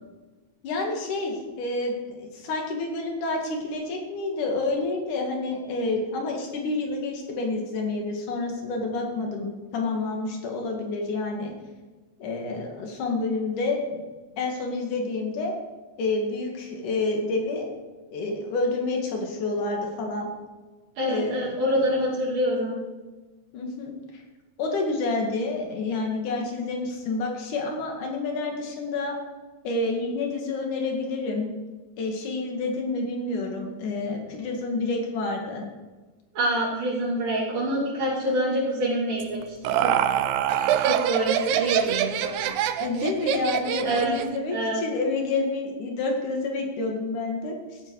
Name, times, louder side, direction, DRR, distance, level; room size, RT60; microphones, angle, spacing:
voice 1, 0.6-11.5 12.2-14.1 14.4-15.5 16.0-17.7 18.1-20.3 21.0-21.6 23.5-23.9 24.6-29.1 29.6-31.5 32.0-35.7 38.2-38.4 42.8-47.8, left 3 dB, 65° left, 1 dB, 3.6 m, -29 dB
voice 2, 21.0-22.8 36.3-39.5 39.8-40.0 40.8-42.5 43.8-44.2 44.5-44.8, right 1 dB, 70° right, -9 dB, 4.3 m, -26 dB
Laughter, 39.2-44.4, right 10 dB, 90° right, 2.5 m, -25 dB
16.5 x 9.1 x 4.9 m, 1.3 s
omnidirectional pair, 4.0 m